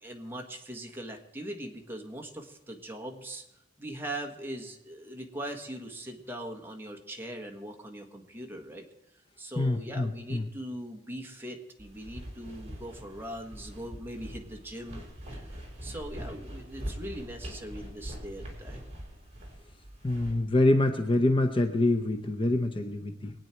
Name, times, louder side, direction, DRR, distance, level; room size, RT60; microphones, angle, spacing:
voice 1, 0.0-3.4 3.8-8.8 9.4-15.0 15.3-18.8, right 1 dB, 10° right, 2 dB, 1.5 m, -41 dB
voice 2, 9.6-10.4 20.0-23.3, left 2 dB, 30° left, 6 dB, 0.8 m, -26 dB
sound 1, 11.8-20.3, equal, 35° right, 4.2 m, -43 dB
23.0 x 9.1 x 4.5 m, 0.96 s
head